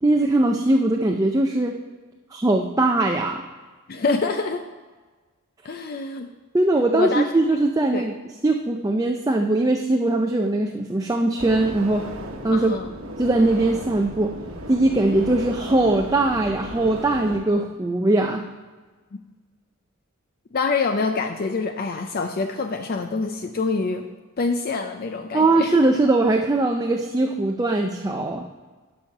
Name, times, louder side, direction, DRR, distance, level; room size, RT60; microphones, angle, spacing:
voice 1, 0.0-1.8 2.3-3.4 6.5-8.1 8.4-12.1 12.4-12.8 13.2-14.4 14.7-18.5 25.3-28.5, right 2 dB, 15° right, 3 dB, 0.4 m, -21 dB
voice 2, 3.9-4.6 5.6-6.3 6.9-7.3 7.9-8.0 12.5-12.9 20.5-24.0 24.4-25.7, left 4 dB, 45° left, 6 dB, 0.4 m, -26 dB
sound 1, 11.4-17.4, right 1 dB, 85° right, 1.1 m, -35 dB
11.0 x 5.6 x 5.4 m, 1.4 s
head